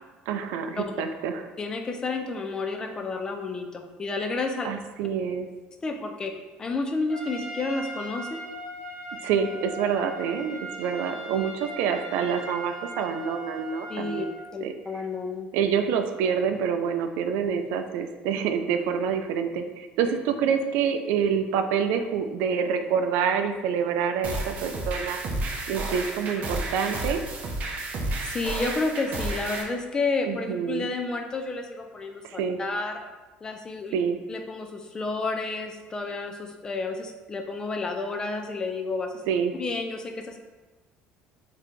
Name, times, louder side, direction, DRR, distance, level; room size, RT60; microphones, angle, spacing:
voice 1, 0.3-1.4 4.6-5.5 9.2-14.4 14.6-14.7 15.5-25.2 25.7-27.2 30.3-30.9 32.2-32.6 33.9-34.2 39.3-39.5, right 7 dB, 80° right, 7 dB, 0.3 m, -27 dB
voice 2, 1.6-4.7 5.8-6.3 6.6-8.4 13.9-15.5 28.2-33.0 33.4-33.9 34.3-39.1 39.6-40.4, left 3 dB, 20° left, 5 dB, 0.4 m, -31 dB
Trumpet, 7.1-14.4, right 1 dB, 5° left, 1.3 m, -39 dB
sound 1, 24.2-29.6, right 2 dB, 40° right, 0.6 m, -31 dB
4.0 x 2.7 x 3.1 m, 1.2 s
cardioid pair, 145°, 4 cm